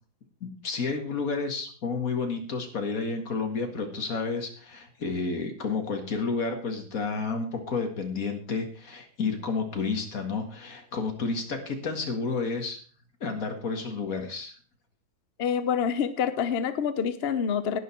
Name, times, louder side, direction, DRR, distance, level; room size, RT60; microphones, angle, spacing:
voice 1, 0.4-12.8 13.2-14.6, left 4 dB, 45° left, 4 dB, 2.1 m, -31 dB
voice 2, 15.4-17.8, left 7 dB, 75° left, 11 dB, 0.5 m, -27 dB
11.0 x 9.4 x 4.5 m, 0.42 s
omnidirectional pair, 2.2 m